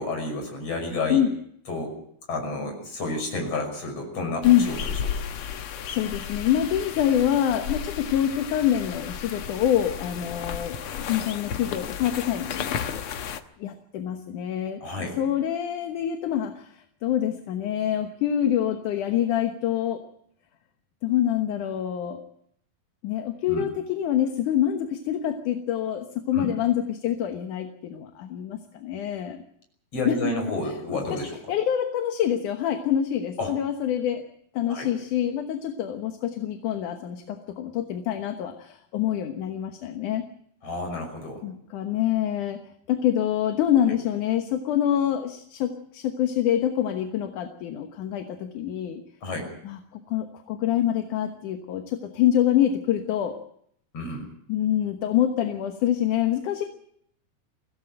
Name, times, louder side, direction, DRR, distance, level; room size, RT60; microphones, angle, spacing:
voice 1, 0.0-1.2 1.7-1.9 2.3-4.8 14.8-15.1 23.5-23.6 26.3-26.5 29.9-31.3 33.4-33.5 34.7-34.9 40.6-41.4 49.2-49.5 53.9-54.3, left 2 dB, 40° left, 3 dB, 6.8 m, -30 dB
sound 1, 4.4-13.4, left 8 dB, 85° left, 1.2 m, -34 dB
voice 2, 5.9-13.0 13.6-14.8 15.2-20.0 21.0-22.2 23.0-29.4 30.0-30.3 30.9-31.2 31.5-34.3 34.5-40.3 41.4-42.6 42.9-49.0 49.6-49.8 50.1-53.4 54.5-56.6, left 10 dB, 65° left, 6 dB, 2.5 m, -26 dB
23.5 x 16.5 x 7.8 m, 0.69 s
omnidirectional pair, 4.2 m